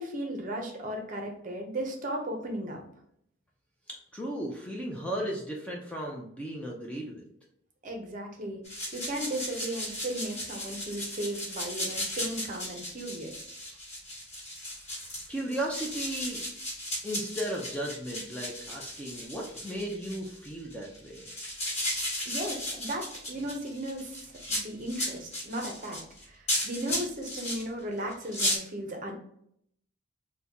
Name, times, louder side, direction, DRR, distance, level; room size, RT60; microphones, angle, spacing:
voice 1, 0.0-2.8 7.8-8.6 8.9-13.6 22.3-29.2, right 1 dB, 40° right, 2 dB, 0.6 m, -36 dB
voice 2, 3.9-7.2 15.3-16.4 17.0-21.4, right 1 dB, 5° left, -2 dB, 0.4 m, -35 dB
sound 1, 8.6-27.6 28.1-28.6, left 1 dB, 30° left, 1.3 m, -35 dB
3.9 x 2.2 x 2.8 m, 0.69 s
head